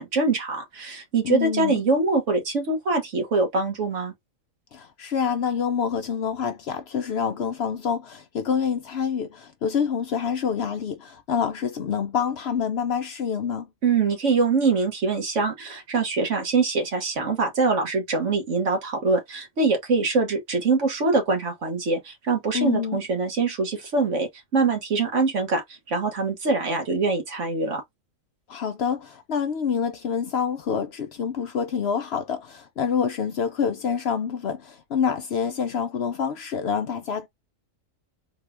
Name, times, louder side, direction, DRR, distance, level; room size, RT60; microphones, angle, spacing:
voice 1, 0.0-4.1 13.8-27.8, right 3 dB, 65° right, 1.5 m, -24 dB
voice 2, 1.2-1.8 4.7-13.7 22.5-23.0 28.5-37.3, left 7 dB, 60° left, 0.7 m, -27 dB
3.7 x 2.3 x 3.3 m
omnidirectional pair, 1.4 m